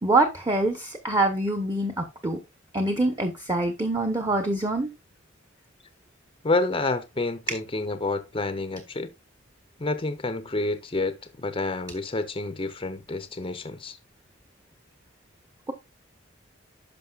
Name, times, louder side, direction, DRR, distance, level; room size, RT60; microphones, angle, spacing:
voice 1, 0.0-2.4 2.7-4.9, right 2 dB, 20° right, 0.9 m, -25 dB
voice 2, 6.4-9.1 9.8-14.0, left 2 dB, 25° left, 0.6 m, -29 dB
12.5 x 5.3 x 2.3 m
head